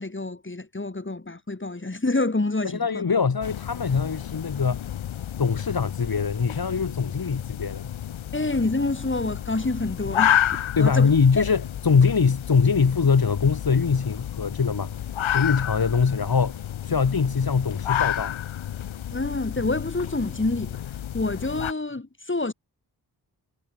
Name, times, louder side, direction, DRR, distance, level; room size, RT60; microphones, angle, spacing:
voice 1, 0.0-3.0 8.3-11.1 11.4-11.5 19.1-20.8 21.1-22.5, left 2 dB, 25° left, 4.9 m, -27 dB
voice 2, 2.6-4.9 5.4-7.9 10.8-15.1 15.3-18.3, left 5 dB, 50° left, 3.3 m, -23 dB
sound 1, 3.4-21.7, left 10 dB, 90° left, 4.3 m, -30 dB
supercardioid pair, 45°, 46 cm